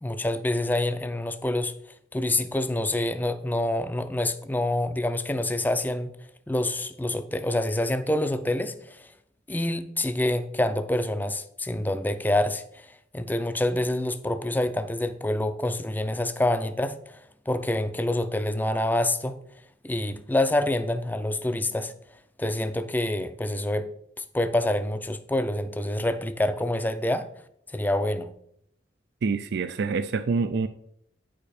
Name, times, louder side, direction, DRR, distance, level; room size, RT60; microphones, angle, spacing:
voice 1, 0.0-1.7 2.1-6.1 6.5-9.1 9.5-17.2 17.5-19.4 19.8-21.9 22.4-23.9 24.2-27.3 27.7-28.3, left 1 dB, 10° left, 10 dB, 0.4 m, -27 dB
voice 2, 29.2-30.7, right 4 dB, 60° right, 10 dB, 0.4 m, -26 dB
9.6 x 5.1 x 4.3 m, 0.71 s
head